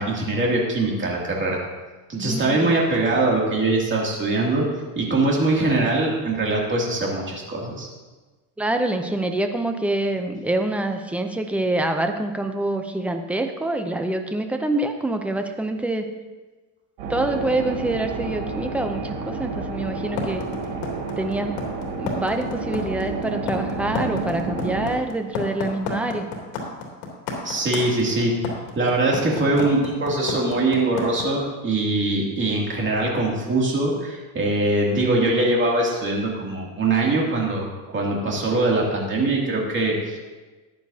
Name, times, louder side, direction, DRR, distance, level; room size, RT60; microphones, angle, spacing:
voice 1, 0.0-1.6 2.1-4.6 4.9-7.9 27.4-28.3 28.8-40.2, right 2 dB, 25° right, -2 dB, 2.6 m, -22 dB
voice 2, 2.2-2.7 8.6-16.1 17.1-20.5 21.2-21.6 22.0-26.2, right 2 dB, 5° right, 5 dB, 0.5 m, -26 dB
sound 1, 17.0-24.9, right 3 dB, 70° right, 3.1 m, -30 dB
sound 2, 20.2-31.2, left 5 dB, 80° left, 2.9 m, -30 dB
14.5 x 10.5 x 2.8 m, 1.2 s
cardioid pair, 140°, 46 cm